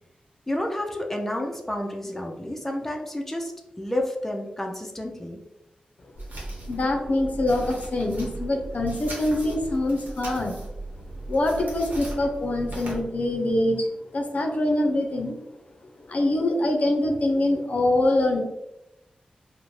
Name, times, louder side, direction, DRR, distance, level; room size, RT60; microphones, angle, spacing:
voice 1, 0.5-5.4, left 1 dB, 10° left, 1 dB, 0.5 m, -30 dB
sound 1, 6.1-13.0, right 2 dB, 75° right, 0.9 m, -37 dB
voice 2, 6.6-10.6 11.2-13.9 14.1-15.4 16.1-18.4, left 1 dB, 60° left, 3 dB, 0.5 m, -24 dB
2.5 x 2.1 x 3.0 m, 0.90 s
cardioid pair, 50°, 3 cm